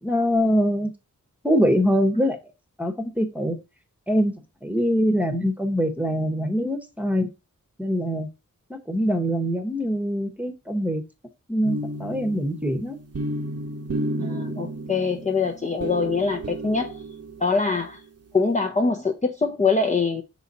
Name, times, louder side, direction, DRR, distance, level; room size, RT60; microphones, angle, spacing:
voice 1, 0.0-0.9 1.4-2.4 2.8-3.6 4.1-4.3 4.6-7.3 7.8-8.3 8.7-11.0 11.5-13.0, equal, 5° right, 1.0 m, -23 dB
sound 1, 11.6-17.7, right 1 dB, 50° right, 0.8 m, -32 dB
voice 2, 14.2-17.0 17.4-18.0 18.3-20.2, left 4 dB, 20° left, 0.6 m, -24 dB
5.8 x 4.0 x 4.1 m
wide cardioid pair, 100°, 32 cm